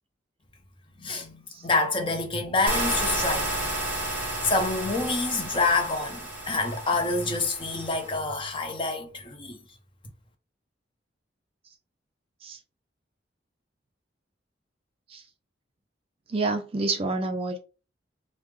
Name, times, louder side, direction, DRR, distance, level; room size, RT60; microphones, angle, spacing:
voice 1, 1.0-3.7 4.4-9.6, left 3 dB, 25° left, 0.6 m, -27 dB
sound 1, 2.7-8.2, right 1 dB, 10° right, 0.9 m, -32 dB
voice 2, 16.3-17.6, right 3 dB, 30° right, 0.3 m, -28 dB
3.3 x 2.0 x 3.2 m
head